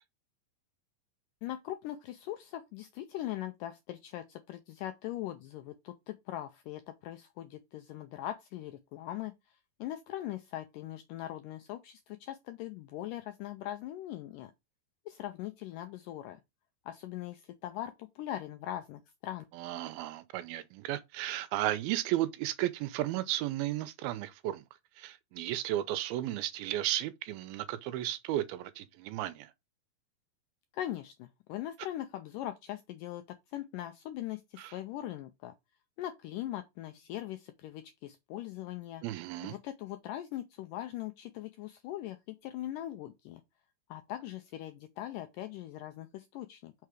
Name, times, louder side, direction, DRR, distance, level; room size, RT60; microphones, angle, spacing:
voice 1, 1.4-14.5 15.1-16.4 16.9-19.5 30.7-33.2 33.5-35.5 36.0-39.0 39.4-43.4 43.9-46.7, left 13 dB, 85° left, 1.9 m, -41 dB
voice 2, 19.5-24.6 25.0-29.5 34.6-34.8 39.0-39.6, right 14 dB, 80° right, 2.4 m, -34 dB
5.9 x 4.7 x 4.9 m
omnidirectional pair, 4.5 m